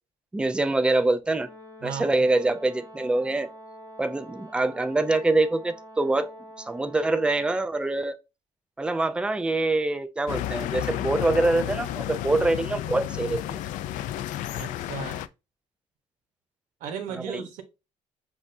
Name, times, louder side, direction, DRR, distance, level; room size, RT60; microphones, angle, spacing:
voice 1, 0.3-1.5 1.8-3.5 4.0-6.3 6.6-8.1 8.8-13.6 17.1-17.4, right 2 dB, 10° right, 0.4 m, -25 dB
Brass instrument, 1.3-7.7, equal, 25° right, 1.4 m, -46 dB
voice 2, 1.8-2.3 14.6-15.2 16.8-17.6, right 7 dB, 85° right, 1.1 m, -36 dB
sound 1, 10.3-15.3, left 12 dB, 75° left, 0.4 m, -32 dB
7.2 x 2.5 x 2.6 m
cardioid pair, 140°, 13 cm